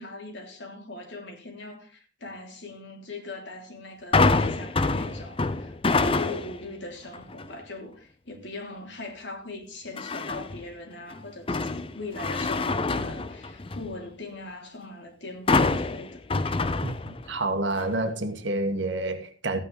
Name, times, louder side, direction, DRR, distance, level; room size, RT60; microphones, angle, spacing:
voice 1, 0.0-16.2, left 2 dB, 70° left, 3.3 m, -40 dB
sound 1, 4.1-6.6 7.1-7.5 10.0-10.6 11.1-13.9 15.5-17.4 17.8-17.9, left 3 dB, 30° left, 0.6 m, -26 dB
voice 2, 16.8-19.6, right 2 dB, 75° right, 1.7 m, -29 dB
14.5 x 9.2 x 4.1 m
head